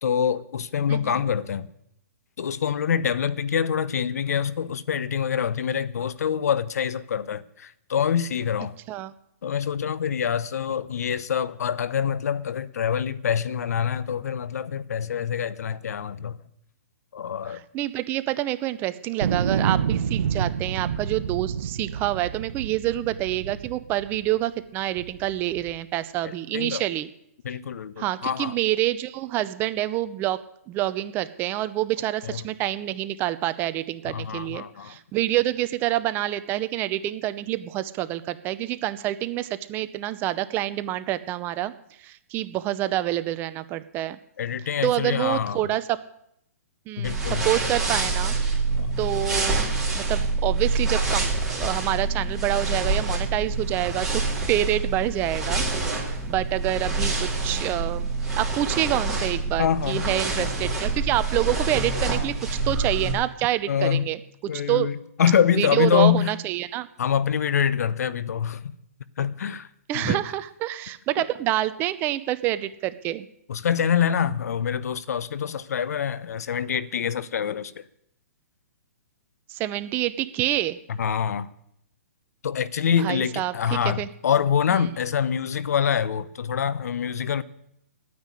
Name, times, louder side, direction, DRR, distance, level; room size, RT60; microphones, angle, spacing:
voice 1, 0.0-1.7 2.4-8.8 9.4-16.4 17.1-17.6 26.2-26.8 27.4-28.6 32.2-32.4 34.1-35.0 44.4-45.7 47.0-47.5 48.8-49.0 59.6-60.5 63.7-64.1 64.5-66.3 67.0-68.7 69.2-69.7 69.9-70.2 73.5-77.9 80.9-81.5 82.4-87.4, left 8 dB, 70° left, 0.8 m, -25 dB
voice 2, 17.7-27.1 28.0-30.4 30.7-41.7 42.0-44.2 44.8-45.8 46.9-48.3 49.0-49.7 49.9-54.2 54.5-55.6 56.3-58.1 58.4-62.4 62.6-64.2 64.5-64.9 65.6-66.9 69.9-73.3 79.5-80.8 83.0-84.1 84.7-84.9, right 14 dB, 25° right, 0.6 m, -27 dB
sound 1, 19.2-24.4 25.0-25.7, right 7 dB, 70° right, 1.0 m, -28 dB
sound 2, 47.0-63.1, right 3 dB, 5° right, 3.8 m, -26 dB
9.4 x 9.3 x 9.9 m
hypercardioid pair, 150°, 9 cm